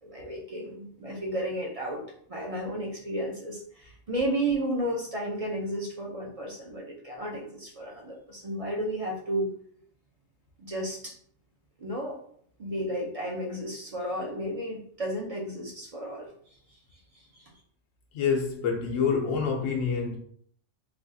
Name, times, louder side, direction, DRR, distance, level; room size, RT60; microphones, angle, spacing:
voice 1, 0.0-2.0 2.3-9.5 10.6-11.1 11.8-12.2 12.6-16.3 17.1-17.5, right 1 dB, 45° right, 0.4 m, -33 dB
voice 2, 18.1-20.2, left 5 dB, 90° left, 1.0 m, -27 dB
3.3 x 2.3 x 2.6 m
omnidirectional pair, 1.3 m